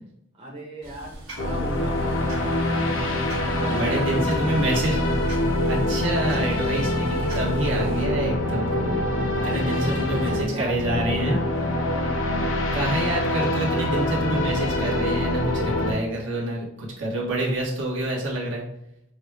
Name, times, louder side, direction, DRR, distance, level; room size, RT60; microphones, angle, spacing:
voice 1, 0.3-4.6 9.4-12.1, right 1 dB, 25° right, -4 dB, 1.0 m, -37 dB
sound 1, 0.8-8.1, equal, 85° right, 1.7 m, -41 dB
sound 2, 1.4-15.9, left 1 dB, 75° left, 0.7 m, -25 dB
voice 2, 3.7-5.0 5.6-9.1 9.3-11.4 12.7-18.6, right 1 dB, 70° right, -4 dB, 1.4 m, -27 dB
6.3 x 2.3 x 3.3 m, 0.78 s
head